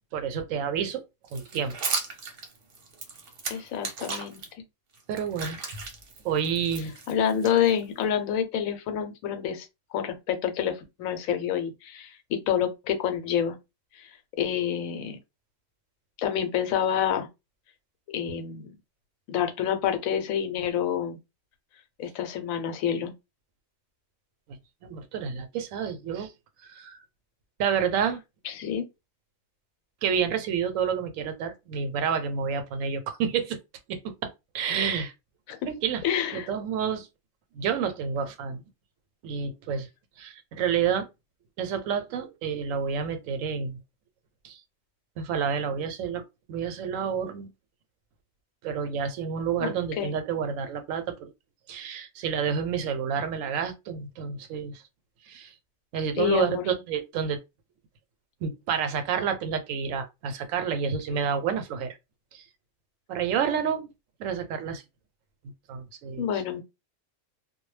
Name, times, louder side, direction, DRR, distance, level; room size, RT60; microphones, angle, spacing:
voice 1, 0.1-1.0 1.3-1.7 5.1-5.6 6.2-6.9 24.8-26.3 26.6-27.0 27.6-28.2 30.0-33.6 33.9-35.1 35.7-36.0 36.3-37.1 37.5-38.6 39.2-39.9 40.2-41.1 41.6-43.8 44.4-44.6 45.2-46.2 46.5-47.5 48.6-51.3 51.7-54.8 55.3-55.5 55.9-57.4 58.4-62.0 62.3-62.4 63.1-63.9 64.2-64.8 65.7-66.3, right 7 dB, 80° right, 0.9 m, -29 dB
sound 1, 1.3-4.5 4.9-8.0, right 4 dB, 50° right, 0.8 m, -36 dB
voice 2, 3.5-4.4 7.1-9.7 9.9-13.6 14.4-15.2 16.2-17.3 18.1-18.7 19.3-21.2 22.0-23.1 28.4-28.8 35.5-35.6 36.0-36.5 49.6-50.1 56.2-56.6 61.1-61.2 66.2-66.6, left 9 dB, 90° left, 1.0 m, -28 dB
2.2 x 2.1 x 3.1 m
omnidirectional pair, 1.4 m